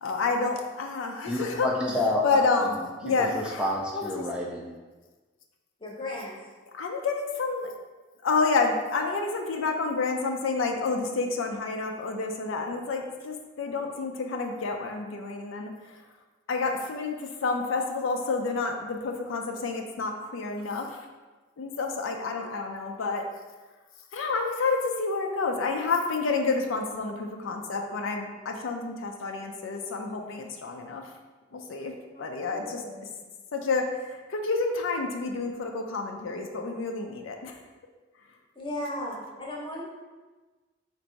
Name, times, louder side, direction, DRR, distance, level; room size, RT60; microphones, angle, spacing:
voice 1, 0.0-1.7 2.2-3.6 3.9-4.2 6.7-7.7 8.2-16.0 16.5-21.0 21.6-23.2 24.1-31.0 31.5-31.9 32.2-32.8 33.5-37.6, left 4 dB, 75° left, 3 dB, 0.4 m, -29 dB
voice 2, 1.3-2.2 2.6-2.7 3.2-4.7, left 1 dB, 5° right, -2 dB, 0.3 m, -29 dB
voice 3, 5.8-6.3 32.1-33.1 38.6-39.8, left 1 dB, 25° left, -3 dB, 0.8 m, -36 dB
4.0 x 2.6 x 4.5 m, 1.3 s
head